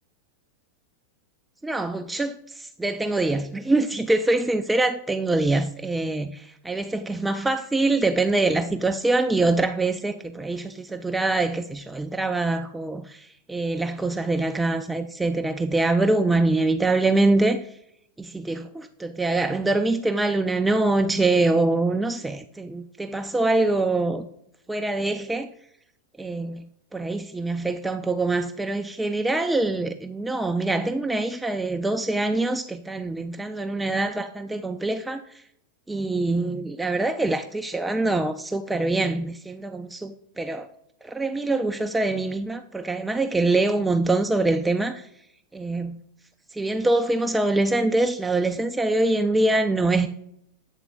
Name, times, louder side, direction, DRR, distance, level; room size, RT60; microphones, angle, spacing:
voice 1, 1.6-17.7 18.2-18.6 19.0-24.3 24.7-25.5 26.2-26.7 26.9-35.4 35.9-40.7 41.0-45.0 45.5-46.0 46.5-50.1, right 2 dB, 5° right, 0.3 m, -24 dB
8.2 x 3.7 x 3.7 m
figure-of-eight pair, 90°, 0 cm